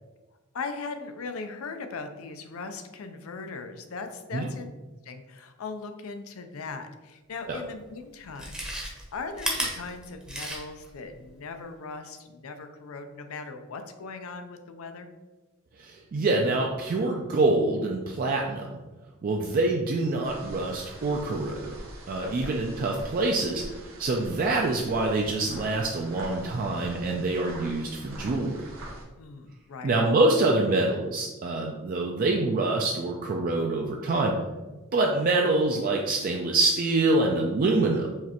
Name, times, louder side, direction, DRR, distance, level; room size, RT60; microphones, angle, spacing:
voice 1, 0.5-4.7 5.0-8.6 8.8-15.1 22.2-22.6 29.2-29.9, left 4 dB, 75° left, 7 dB, 0.5 m, -39 dB
Chewing mastication, 7.5-7.6 8.3-10.9 11.3-11.4, right 1 dB, 5° right, 0.7 m, -33 dB
voice 2, 15.8-18.8 19.2-21.7 22.1-23.6 24.0-28.6 29.8-34.3 34.9-38.1, right 2 dB, 40° right, 1 dB, 0.3 m, -25 dB
sound 1, 20.2-29.0, right 1 dB, 70° right, 1.0 m, -44 dB
4.8 x 3.2 x 2.9 m, 1.2 s
head